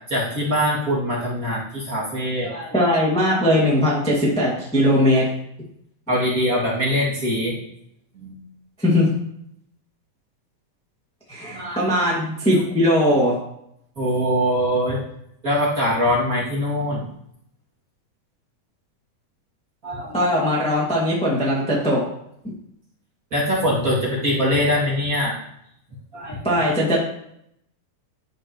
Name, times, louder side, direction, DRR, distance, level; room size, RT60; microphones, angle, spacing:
voice 1, 0.1-2.7 6.1-7.6 8.1-8.4 11.4-11.8 12.5-12.6 14.0-15.0 15.4-17.0 19.8-20.3 23.3-25.4 26.1-26.4, equal, 25° right, -6 dB, 2.5 m, -23 dB
voice 2, 2.7-5.2 8.8-9.1 11.3-13.3 20.1-22.0 26.4-27.0, equal, 5° left, -6 dB, 1.1 m, -19 dB
12.5 x 5.3 x 3.1 m, 0.73 s
omnidirectional pair, 4.0 m